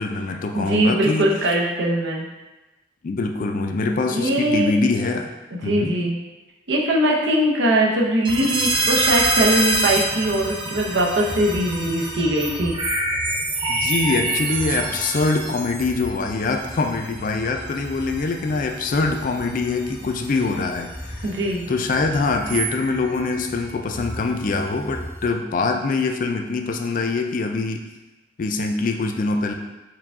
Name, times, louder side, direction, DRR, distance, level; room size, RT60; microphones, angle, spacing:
voice 1, 0.0-1.3 3.0-5.3 5.6-6.0 13.7-21.3 21.7-27.8 28.4-29.5, left 3 dB, 50° left, 4 dB, 0.4 m, -24 dB
voice 2, 0.5-2.3 4.1-4.7 5.6-6.2 6.7-12.8 21.2-21.6, right 1 dB, 80° right, -2 dB, 0.7 m, -21 dB
sound 1, 8.2-25.3, right 2 dB, 30° right, 0.6 m, -27 dB
4.6 x 2.3 x 3.6 m, 1.1 s
head